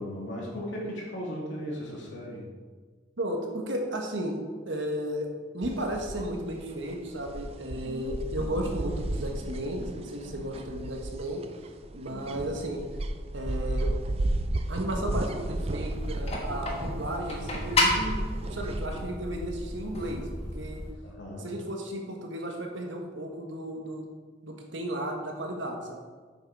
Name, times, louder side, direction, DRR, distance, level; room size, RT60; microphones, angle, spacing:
voice 1, 0.0-2.4 12.1-12.5 21.0-21.5, equal, 85° left, -3 dB, 2.8 m, -37 dB
voice 2, 3.2-4.4 4.6-5.3 5.5-11.4 11.9-12.8 13.3-13.9 14.7-18.2 18.5-20.3 20.5-20.8 21.4-24.0 24.4-26.0, right 1 dB, 85° right, 2 dB, 1.6 m, -34 dB
sound 1, 5.6-18.9, right 1 dB, 30° right, 0.4 m, -34 dB
sound 2, 15.9-20.9, left 2 dB, 35° left, 1.5 m, -31 dB
8.9 x 6.7 x 4.9 m, 1.5 s
head